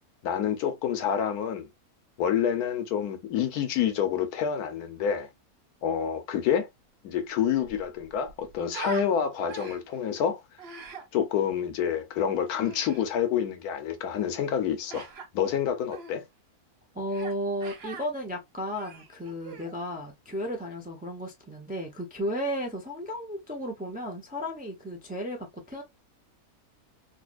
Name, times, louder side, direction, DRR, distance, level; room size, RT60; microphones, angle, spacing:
voice 1, 0.2-1.7 2.2-5.3 5.8-6.7 7.0-10.4 11.1-15.1 15.3-16.2, left 8 dB, 80° left, 1.2 m, -28 dB
Human voice, 7.5-9.1 9.5-10.0 10.6-11.1 12.5-13.0 14.9-15.3 15.9-16.1 17.1-17.4 17.6-18.1 18.6-19.7, right 4 dB, 50° right, 0.9 m, -42 dB
voice 2, 16.9-25.8, equal, 10° right, 0.4 m, -34 dB
4.0 x 2.5 x 2.4 m
omnidirectional pair, 1.6 m